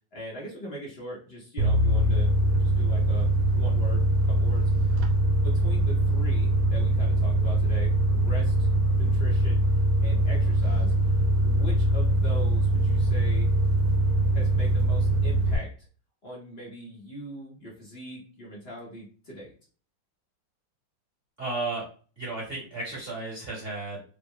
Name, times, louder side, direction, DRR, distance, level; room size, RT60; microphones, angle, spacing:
voice 1, 0.1-2.3 2.6-5.0 5.4-8.7 9.0-9.6 10.0-13.5 14.3-15.9 16.2-19.5, right 1 dB, 50° left, -4 dB, 0.7 m, -41 dB
sound 1, 1.6-15.6, right 1 dB, 75° right, 1.4 m, -23 dB
voice 2, 21.4-21.8 22.2-24.0, right 2 dB, 35° right, -4 dB, 1.2 m, -33 dB
3.7 x 2.0 x 3.6 m, 0.40 s
omnidirectional pair, 2.4 m